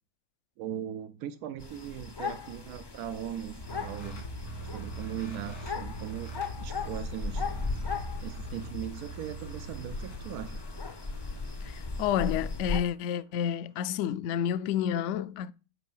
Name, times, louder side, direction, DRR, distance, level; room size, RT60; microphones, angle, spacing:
voice 1, 0.6-4.2 4.7-6.3 6.6-7.4 8.2-10.6, right 11 dB, 85° right, 1.1 m, -39 dB
sound 1, 1.6-12.8, left 4 dB, 30° left, 0.4 m, -37 dB
sound 2, 3.6-13.5, right 2 dB, 85° left, 2.7 m, -43 dB
voice 2, 11.6-15.5, left 9 dB, 65° left, 0.8 m, -30 dB
8.2 x 5.6 x 5.5 m
omnidirectional pair, 1.6 m